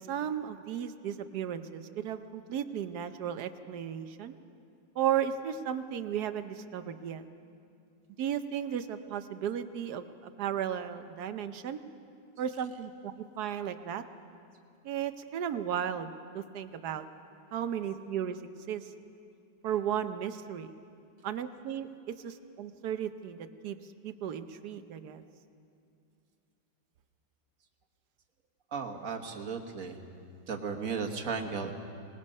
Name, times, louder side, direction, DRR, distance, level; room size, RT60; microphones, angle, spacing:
voice 1, 0.1-4.3 5.0-7.2 8.2-11.8 12.4-14.0 14.8-17.1 17.5-18.4 18.7-18.8 19.6-20.7 21.2-21.9 22.2-23.8 24.0-25.2, right 9 dB, 65° right, 10 dB, 1.3 m, -35 dB
voice 2, 28.7-30.0 30.5-31.7, right 5 dB, 50° right, 3 dB, 1.7 m, -35 dB
25.5 x 19.5 x 5.4 m, 2.5 s
omnidirectional pair, 1.9 m